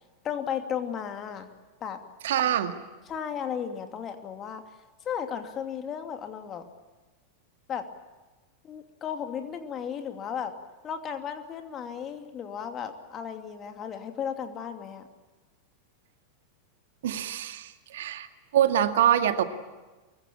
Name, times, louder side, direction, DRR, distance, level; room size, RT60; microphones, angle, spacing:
voice 1, 0.2-1.5 1.8-2.0 3.1-4.6 5.0-6.7 7.7-7.8 8.6-10.5 10.8-15.1, left 8 dB, 25° left, 6 dB, 2.7 m, -34 dB
voice 2, 2.2-2.8 17.0-18.3 18.5-19.4, right 10 dB, 60° right, 8 dB, 2.0 m, -24 dB
24.0 x 23.0 x 8.8 m, 1.2 s
figure-of-eight pair, 90°, 0 cm